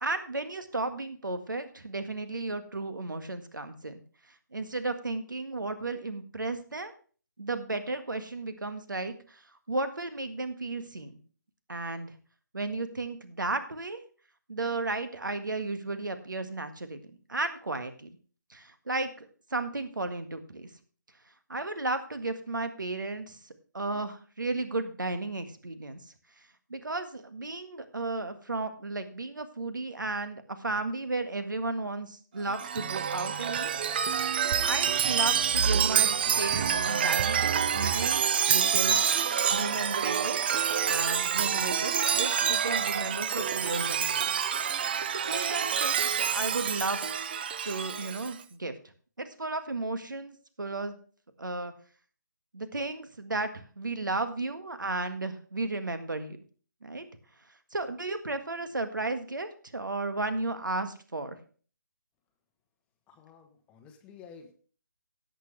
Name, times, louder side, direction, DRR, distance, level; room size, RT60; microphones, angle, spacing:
voice 1, 0.0-4.0 4.5-6.9 7.4-9.4 9.7-11.1 11.7-12.1 12.5-14.0 14.5-17.0 17.3-18.2 18.5-20.7 21.5-23.4 23.7-26.0 26.7-33.7 34.6-36.1 36.4-38.2 38.5-39.0 39.5-44.4 45.1-47.0 47.6-48.7 49.2-51.0 51.4-51.7 52.5-56.4 56.8-57.0 57.7-61.4, right 2 dB, 75° right, 9 dB, 1.7 m, -34 dB
Chime, 32.5-48.3, right 8 dB, 30° right, 0.5 m, -27 dB
voice 2, 63.1-64.5, left 6 dB, 10° left, 5 dB, 1.0 m, -51 dB
17.0 x 6.7 x 3.3 m, 0.41 s
figure-of-eight pair, 150°, 11 cm